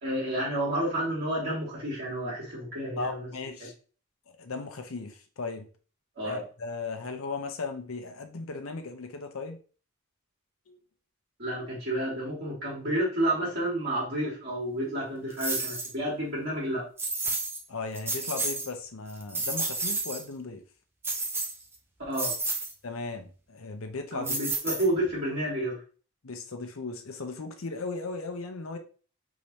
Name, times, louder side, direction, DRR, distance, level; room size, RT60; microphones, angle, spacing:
voice 1, 0.0-3.3 3.6-3.7 6.2-6.4 11.4-16.8 22.0-22.4 24.1-25.8, right 1 dB, 50° right, -6 dB, 2.0 m, -30 dB
voice 2, 3.0-3.7 4.3-5.7 6.2-9.6 10.7-10.8 17.7-20.6 22.8-24.4 26.2-28.8, left 3 dB, 80° left, 6 dB, 0.7 m, -37 dB
sound 1, 15.4-15.9 17.0-17.6 17.9-18.7 19.1-20.2 21.0-21.7 22.1-22.7 24.2-25.1, right 3 dB, 10° right, 0.6 m, -31 dB
3.7 x 3.3 x 4.2 m, 0.38 s
head